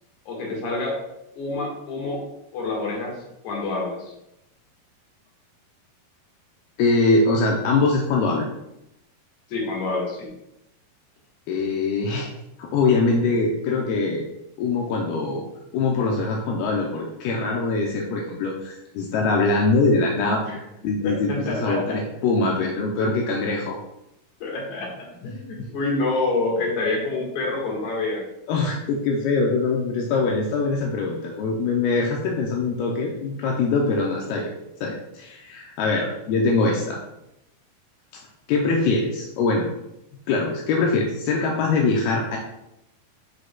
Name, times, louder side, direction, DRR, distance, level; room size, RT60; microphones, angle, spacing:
voice 1, 0.3-1.0 1.4-2.2 2.5-3.2 3.4-4.1 9.5-10.3 20.5-20.6 21.0-22.0 24.4-28.2, left 3 dB, 55° left, -2 dB, 2.7 m, -27 dB
voice 2, 6.8-8.5 11.5-12.3 12.6-14.2 14.6-15.5 15.7-20.4 20.8-23.8 25.6-25.7 28.5-34.5 34.8-37.0 38.5-39.7 40.3-42.4, left 3 dB, 80° left, -1 dB, 2.6 m, -23 dB
9.2 x 5.0 x 2.3 m, 0.84 s
omnidirectional pair, 4.6 m